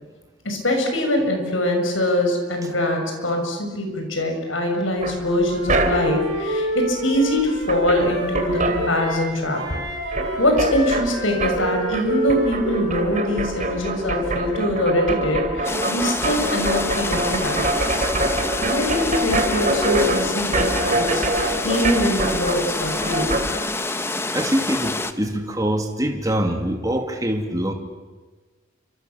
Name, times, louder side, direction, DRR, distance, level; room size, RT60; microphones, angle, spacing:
voice 1, 0.4-9.6 10.4-17.8 18.6-23.4, left 1 dB, 85° left, 4 dB, 6.6 m, -23 dB
sound 1, 5.0-6.3 7.3-7.4 7.6-9.5 9.7-23.5, right 1 dB, 40° right, 3.3 m, -25 dB
Wind instrument woodwind instrument, 5.4-9.3 9.5-13.6, right 1 dB, 60° right, 7.4 m, -28 dB
sound 2, 15.6-25.1, left 2 dB, 15° left, 1.0 m, -27 dB
voice 2, 24.3-27.7, equal, 20° right, 3 dB, 2.7 m, -24 dB
29.5 x 26.0 x 7.1 m, 1.3 s
head